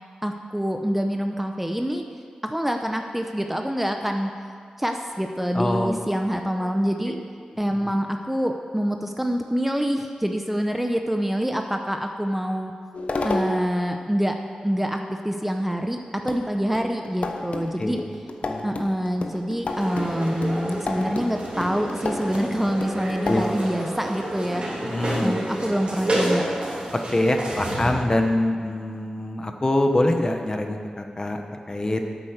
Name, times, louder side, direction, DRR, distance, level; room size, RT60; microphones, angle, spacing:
voice 1, 0.2-2.1 2.4-4.3 4.8-7.2 7.6-12.7 13.2-14.4 14.6-16.0 16.2-18.0 18.6-24.6 25.2-26.4, equal, 5° right, 4 dB, 0.7 m, -26 dB
voice 2, 5.5-6.0 6.6-6.7 7.1-7.2 7.5-7.9 17.8-18.0 18.4-18.7 23.2-23.4 24.8-25.4 27.1-32.0, left 1 dB, 30° left, 5 dB, 1.0 m, -25 dB
sound 1, 12.9-13.8 15.7-15.8 16.3-23.5, left 2 dB, 60° left, 0.9 m, -31 dB
sound 2, 19.7-27.9, right 1 dB, 50° right, 3.3 m, -30 dB
9.0 x 8.4 x 6.6 m, 2.2 s
wide cardioid pair, 70°, 2 cm